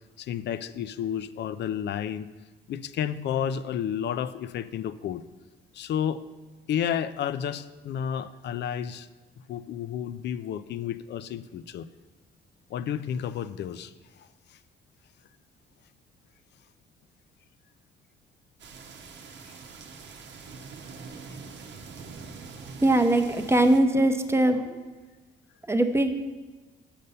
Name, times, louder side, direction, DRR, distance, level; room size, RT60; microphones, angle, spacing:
voice 1, 0.2-2.3 2.7-5.2 5.7-6.2 6.7-9.1 9.5-11.9 12.7-13.9 14.2-14.6 21.3-21.4, left 9 dB, 60° left, 14 dB, 0.4 m, -31 dB
sound 1, 18.6-23.8, right 4 dB, 65° right, 0.8 m, -44 dB
voice 2, 22.8-24.7 25.7-26.1, right 1 dB, 15° right, 6 dB, 0.6 m, -21 dB
6.8 x 5.4 x 5.4 m, 1.2 s
cardioid pair, 90°, 20 cm